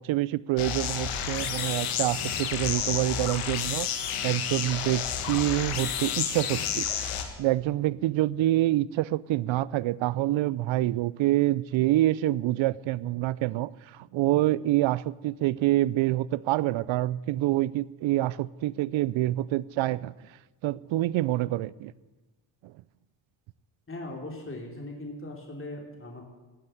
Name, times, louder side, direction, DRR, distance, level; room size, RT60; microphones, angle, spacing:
voice 1, 0.0-7.1 7.4-20.1 20.6-21.9 22.6-22.7, right 15 dB, 70° right, 0.7 m, -26 dB
sound 1, 0.6-7.2, left 8 dB, 90° left, 2.0 m, -30 dB
voice 2, 23.9-26.2, left 2 dB, 25° left, 3.3 m, -39 dB
16.5 x 8.7 x 9.3 m
supercardioid pair, 70°, 49 cm